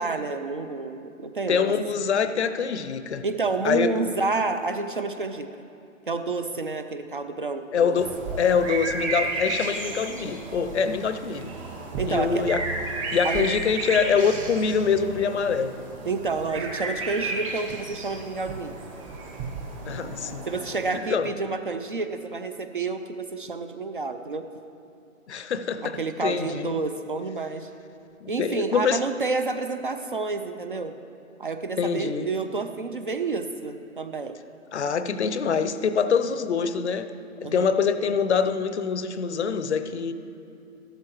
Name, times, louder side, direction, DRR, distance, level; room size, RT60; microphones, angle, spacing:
voice 1, 0.0-1.8 3.2-5.5 6.1-8.0 12.0-12.4 13.2-13.5 16.0-18.7 20.5-24.4 25.8-27.7 28.3-30.9 31.4-34.4 37.4-37.7, right 3 dB, 40° right, 9 dB, 0.4 m, -29 dB
voice 2, 1.5-3.2 3.6-3.9 7.7-11.5 12.1-12.6 13.1-15.7 19.8-20.4 21.1-21.3 25.3-26.7 28.2-29.0 31.8-32.3 34.7-37.1 37.4-40.1, left 6 dB, 55° left, 12 dB, 0.6 m, -25 dB
sound 1, 7.9-21.0, right 3 dB, 25° right, 1.0 m, -33 dB
14.0 x 12.5 x 3.0 m, 2.6 s
figure-of-eight pair, 145°, 41 cm